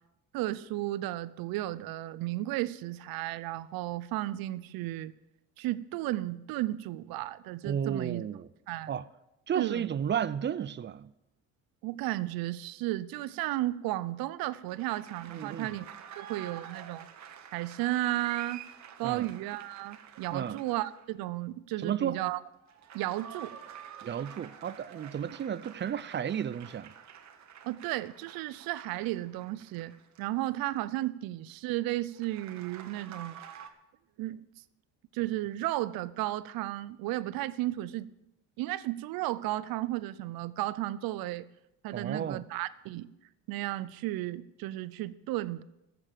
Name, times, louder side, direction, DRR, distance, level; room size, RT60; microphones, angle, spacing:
voice 1, 0.3-5.1 5.6-8.2 8.7-8.9 9.5-9.9 11.8-15.8 16.2-17.1 17.5-18.6 19.0-22.4 22.9-23.5 27.6-33.4 34.2-34.4 35.1-38.1 38.6-41.4 41.8-43.1 43.5-45.6, right 16 dB, 75° right, 0.7 m, -34 dB
voice 2, 7.6-8.5 8.9-9.1 9.5-11.1 15.3-15.8 19.0-19.3 20.3-20.6 21.8-22.2 24.0-26.9 41.9-42.4, right 8 dB, 30° right, 0.5 m, -33 dB
sound 1, 14.7-21.2 22.6-30.9 32.1-33.7, right 8 dB, 50° right, 1.3 m, -49 dB
14.5 x 7.0 x 7.5 m
cardioid pair, 95°, 35 cm